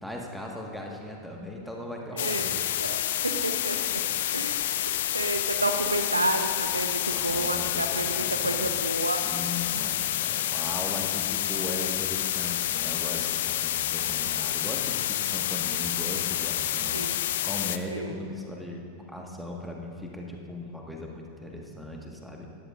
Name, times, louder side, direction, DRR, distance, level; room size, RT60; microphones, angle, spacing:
voice 1, 0.0-2.6 7.1-8.7 9.2-22.5, left 1 dB, ahead, 0 dB, 1.6 m, -38 dB
sound 1, 2.2-17.8, left 12 dB, 55° left, 0.4 m, -29 dB
voice 2, 2.2-4.0 4.3-9.2 16.9-17.2 17.9-18.1, right 2 dB, 80° right, 7 dB, 0.6 m, -31 dB
19.0 x 13.5 x 2.5 m, 2.6 s
figure-of-eight pair, 90°, 0 cm